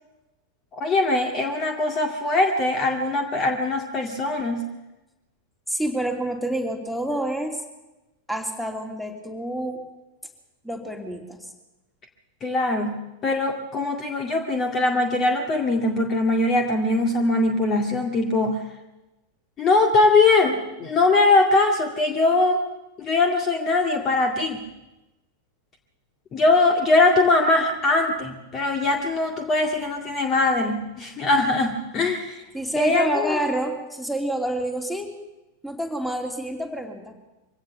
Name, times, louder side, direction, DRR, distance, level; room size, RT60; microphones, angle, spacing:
voice 1, 0.7-4.6 12.4-18.6 19.6-22.6 23.0-24.6 26.3-32.4 32.8-33.4, left 2 dB, 30° left, 4 dB, 2.0 m, -21 dB
voice 2, 5.7-7.6 8.3-9.8 10.6-11.4 32.5-35.1 35.6-37.1, right 1 dB, ahead, 4 dB, 3.0 m, -28 dB
24.0 x 17.0 x 7.0 m, 1.0 s
figure-of-eight pair, 90°, 0 cm